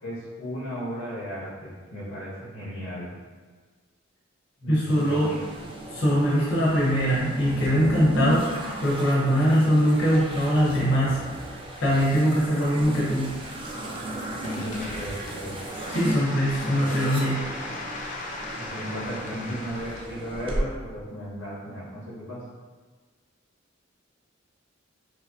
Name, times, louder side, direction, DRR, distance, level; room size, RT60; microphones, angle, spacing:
voice 1, 0.0-3.1 4.6-5.4 14.4-15.6 16.6-16.9 18.5-22.4, equal, 90° left, -8 dB, 1.3 m, -35 dB
voice 2, 4.7-5.3 5.9-8.4 8.8-11.2 11.8-13.3 15.9-17.4, equal, 65° left, -7 dB, 0.9 m, -22 dB
sound 1, 4.9-20.6, right 1 dB, 25° right, 0.5 m, -35 dB
sound 2, 13.7-20.1, left 2 dB, 40° left, 0.4 m, -38 dB
4.9 x 2.0 x 2.7 m, 1.4 s
head